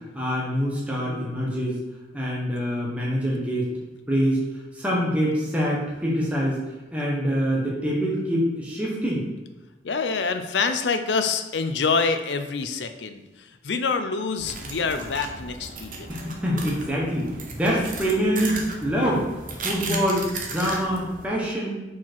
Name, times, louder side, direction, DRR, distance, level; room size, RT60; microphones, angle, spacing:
voice 1, 0.1-1.8 2.1-3.7 4.1-4.4 4.7-6.6 6.9-9.2 16.1-19.3 19.6-21.8, equal, 10° right, -5 dB, 1.3 m, -25 dB
voice 2, 9.8-16.1, left 4 dB, 75° left, 8 dB, 0.6 m, -26 dB
sound 1, 14.4-21.3, right 3 dB, 50° right, 1.0 m, -35 dB
5.7 x 4.6 x 4.6 m, 1.1 s
head